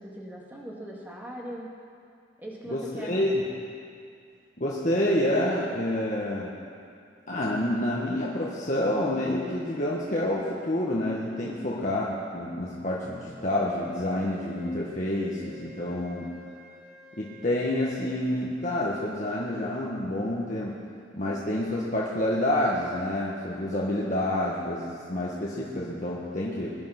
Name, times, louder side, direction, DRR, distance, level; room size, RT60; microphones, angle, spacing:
voice 1, 0.0-1.7 2.4-3.4 11.4-11.8, right 1 dB, 10° right, -4 dB, 2.3 m, -40 dB
voice 2, 2.7-3.4 4.6-6.5 7.3-16.3 17.2-20.8 21.1-26.7, left 1 dB, 40° left, -5 dB, 1.5 m, -28 dB
Wind instrument woodwind instrument, 13.8-18.2, left 2 dB, 40° right, 4.6 m, -51 dB
20.5 x 10.5 x 6.0 m, 2.3 s
head